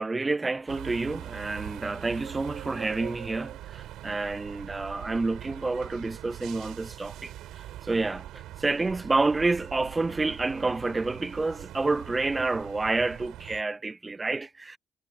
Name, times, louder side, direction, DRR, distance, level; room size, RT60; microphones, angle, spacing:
voice 1, 0.0-7.3 7.8-14.8, right 3 dB, 20° right, 0.6 m, -29 dB
sound 1, 0.7-13.6, right 13 dB, 85° right, 5.0 m, -42 dB
cardioid pair, 90°, 0 cm